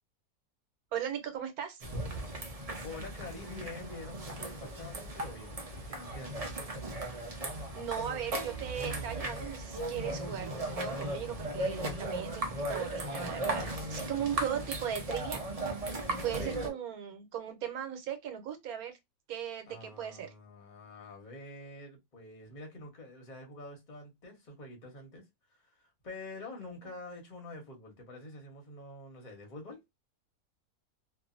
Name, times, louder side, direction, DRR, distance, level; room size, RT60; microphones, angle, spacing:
voice 1, 0.9-1.8 7.7-15.4 16.1-19.0 19.3-20.3, right 9 dB, 80° right, 1.2 m, -38 dB
sound 1, 1.8-16.7, right 1 dB, 40° right, 0.5 m, -37 dB
voice 2, 2.8-6.5 16.3-16.8 19.7-25.3 25.6-29.8, left 2 dB, 35° left, 1.1 m, -47 dB
2.6 x 2.5 x 2.4 m
omnidirectional pair, 1.6 m